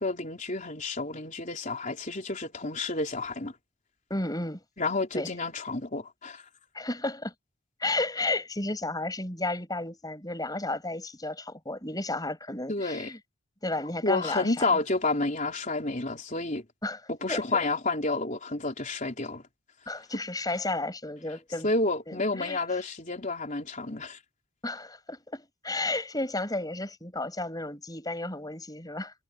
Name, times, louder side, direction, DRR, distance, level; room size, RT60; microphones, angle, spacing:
voice 1, 0.0-3.5 4.8-6.4 12.7-13.1 14.0-16.6 17.1-19.4 21.6-24.2, left 3 dB, 35° left, 4.0 m, -30 dB
voice 2, 4.1-4.6 5.1-5.3 6.7-7.3 7.8-13.2 13.6-14.8 16.8-17.0 17.3-17.7 19.9-21.7 22.1-22.6 24.6-29.1, left 2 dB, 20° left, 7.9 m, -33 dB
head